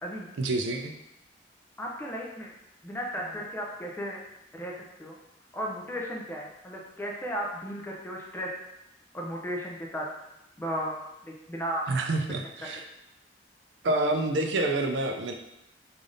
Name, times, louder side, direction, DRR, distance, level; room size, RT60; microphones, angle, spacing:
voice 1, 0.4-0.9 11.9-12.8 13.8-15.3, right 2 dB, 70° right, 4 dB, 0.4 m, -27 dB
voice 2, 1.8-2.5 2.8-4.2 4.5-5.2 5.5-8.6 9.1-10.1 10.6-11.9 12.4-12.7, equal, 10° left, -2 dB, 0.4 m, -35 dB
3.3 x 2.5 x 3.8 m, 0.87 s
head